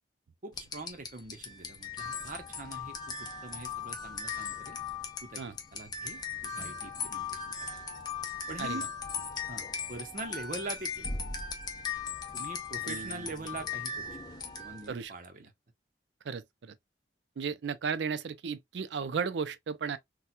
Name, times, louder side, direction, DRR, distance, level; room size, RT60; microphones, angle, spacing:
voice 1, 0.4-4.8 5.2-7.8 8.5-8.9 9.5-11.2 12.3-14.2 14.6-15.5, right 2 dB, 45° right, 0.7 m, -44 dB
sound 1, 0.5-15.0, left 5 dB, 25° left, 0.6 m, -38 dB
voice 2, 12.8-13.5 14.9-15.1 16.2-16.8 17.4-20.0, right 6 dB, 85° right, 0.4 m, -35 dB
4.2 x 2.2 x 2.2 m
head